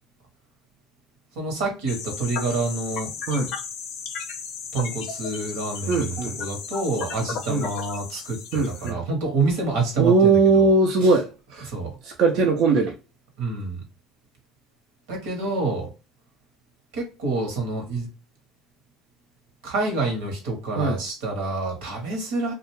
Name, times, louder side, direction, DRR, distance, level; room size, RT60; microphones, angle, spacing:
voice 1, 1.3-3.1 4.7-10.7 11.0-11.2 11.6-11.9 13.4-13.8 15.1-15.9 16.9-18.1 19.6-22.5, right 3 dB, 80° right, 1.1 m, -27 dB
sound 1, 1.9-8.9, left 6 dB, 65° left, 0.5 m, -35 dB
voice 2, 5.9-6.4 7.5-7.7 8.5-9.0 10.0-11.2 11.5-11.7 12.2-12.9 20.8-21.0, right 3 dB, 65° right, 0.5 m, -19 dB
2.4 x 2.3 x 3.0 m
hypercardioid pair, 80°, 0 cm